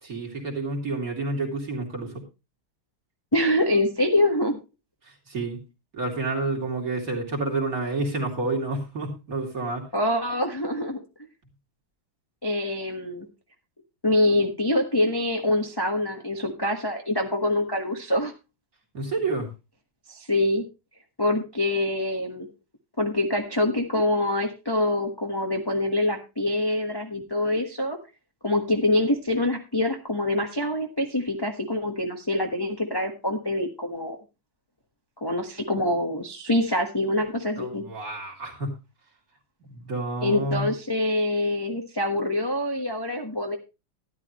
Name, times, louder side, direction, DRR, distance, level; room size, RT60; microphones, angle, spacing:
voice 1, 0.0-2.2 5.0-5.6 5.9-9.9 18.9-19.5 37.6-38.8 39.7-40.7, right 2 dB, 40° right, 0 dB, 3.0 m, -29 dB
voice 2, 3.3-4.6 9.9-11.0 12.4-13.3 14.0-18.3 20.1-20.6 21.2-22.5 23.0-28.0 28.4-34.2 35.2-37.8 40.2-43.6, left 1 dB, 15° left, 2 dB, 1.0 m, -25 dB
12.5 x 11.5 x 3.1 m, 0.28 s
omnidirectional pair, 2.4 m